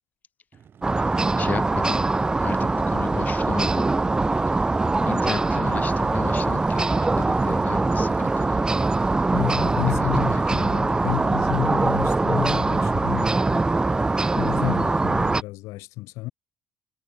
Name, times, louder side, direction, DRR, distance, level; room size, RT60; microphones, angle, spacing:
Race car auto racing / Idling / Accelerating revving vroom, 0.5-15.0, right 8 dB, 45° right, 2.4 m, -51 dB
sound 1, 0.8-15.4, right 3 dB, 15° right, 0.6 m, -22 dB
voice 1, 1.4-2.0 2.4-3.9 4.5-4.6 5.0-8.7 10.0-10.6, left 6 dB, 35° left, 0.8 m, -34 dB
voice 2, 9.3-13.7 14.3-16.3, left 20 dB, 90° left, 1.8 m, -31 dB
cardioid pair, 105°, 5 cm